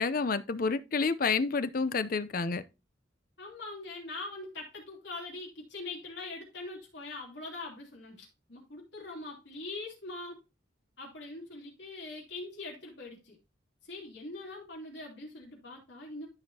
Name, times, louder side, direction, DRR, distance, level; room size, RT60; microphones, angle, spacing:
voice 1, 0.0-2.6, left 4 dB, 50° left, 0.6 m, -29 dB
voice 2, 3.4-10.4 11.0-13.4 13.8-16.3, left 2 dB, 65° left, 3.1 m, -42 dB
13.5 x 4.9 x 2.8 m
head